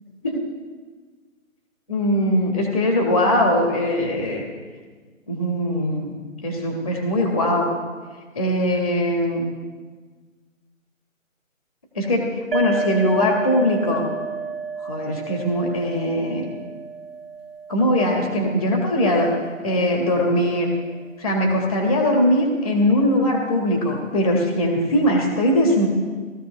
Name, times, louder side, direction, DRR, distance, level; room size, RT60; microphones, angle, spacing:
voice 1, 1.9-4.4 5.3-7.7 8.3-9.5 11.9-14.0 14.8-16.5 17.7-19.3 19.6-20.7 21.2-25.9, left 1 dB, 10° left, -14 dB, 0.7 m, -21 dB
sound 1, 12.5-20.0, right 5 dB, 45° right, 0.8 m, -32 dB
19.5 x 13.5 x 2.3 m, 1.4 s
hypercardioid pair, 170°, 41 cm